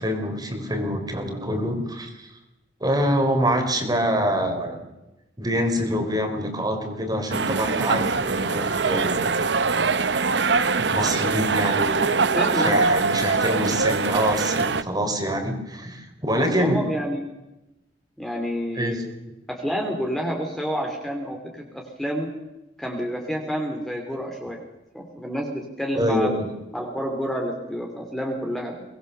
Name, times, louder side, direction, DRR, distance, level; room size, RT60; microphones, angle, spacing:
voice 1, 0.0-2.3 2.8-4.8 5.4-9.7 10.8-12.2 12.5-16.8 18.8-19.0 26.0-26.5, equal, 25° right, 5 dB, 3.9 m, -25 dB
sound 1, 7.3-14.8, right 4 dB, 75° right, 1.0 m, -23 dB
voice 2, 12.3-12.9 16.3-17.2 18.2-19.1 19.5-22.3 22.8-24.6 24.9-26.3 26.7-28.7, equal, ahead, 1 dB, 3.0 m, -29 dB
23.5 x 20.0 x 6.8 m, 0.97 s
head